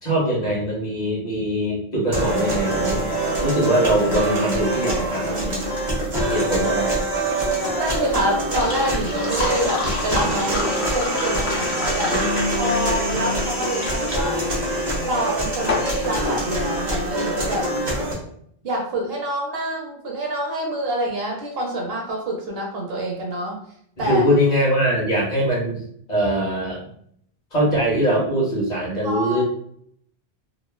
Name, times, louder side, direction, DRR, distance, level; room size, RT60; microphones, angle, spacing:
voice 1, 0.0-3.1 3.4-5.6 6.2-7.1 24.1-25.8 26.1-26.8 27.5-29.4, right 1 dB, 40° left, -5 dB, 1.0 m, -22 dB
sound 1, 2.1-18.1, right 1 dB, 45° right, 1.1 m, -24 dB
voice 2, 4.8-5.6 7.7-12.2 12.6-14.4 15.0-17.7 18.6-23.6 24.0-24.3 29.0-29.4, right 1 dB, 65° right, -1 dB, 0.9 m, -26 dB
sound 2, 7.3-17.2, left 3 dB, 70° left, 1.0 m, -30 dB
3.1 x 2.2 x 2.2 m, 0.66 s
omnidirectional pair, 1.1 m